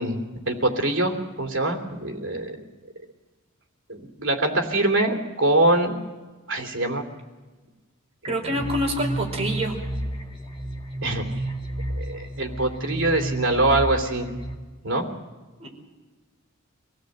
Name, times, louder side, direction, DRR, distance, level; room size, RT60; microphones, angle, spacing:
voice 1, 0.0-2.7 3.9-6.0 6.5-7.0 8.3-8.6 11.0-11.4 11.9-14.3 14.8-15.0, right 2 dB, 60° right, 3 dB, 3.1 m, -24 dB
voice 2, 8.2-9.8 15.6-15.7, equal, 30° right, 0 dB, 4.8 m, -26 dB
sound 1, 8.5-14.5, right 1 dB, 25° left, 2.2 m, -31 dB
25.5 x 17.0 x 7.9 m, 1.3 s
head